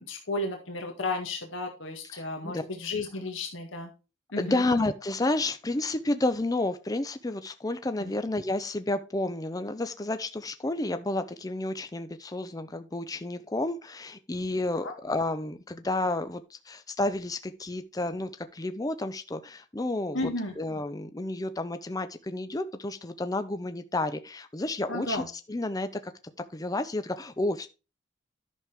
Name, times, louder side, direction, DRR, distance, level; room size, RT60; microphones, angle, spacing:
voice 1, 0.0-3.9 4.3-4.6 8.0-8.1 14.8-14.9 20.1-20.5 24.9-25.3, left 2 dB, 75° left, 3 dB, 1.7 m, -33 dB
voice 2, 2.1-2.6 4.4-20.3 20.6-25.2 25.5-26.1 26.5-27.7, left 2 dB, 20° left, 10 dB, 0.5 m, -31 dB
11.0 x 6.4 x 3.5 m, 0.31 s
head